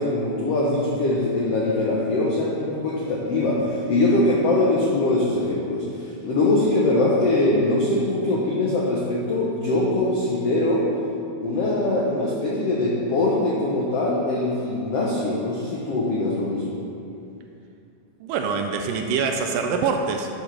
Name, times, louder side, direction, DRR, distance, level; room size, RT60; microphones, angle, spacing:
voice 1, 0.0-10.9 11.4-16.8, left 2 dB, 85° left, -4 dB, 1.3 m, -22 dB
voice 2, 18.2-20.3, right 5 dB, 80° right, 4 dB, 2.1 m, -24 dB
12.0 x 7.1 x 3.4 m, 2.6 s
omnidirectional pair, 4.1 m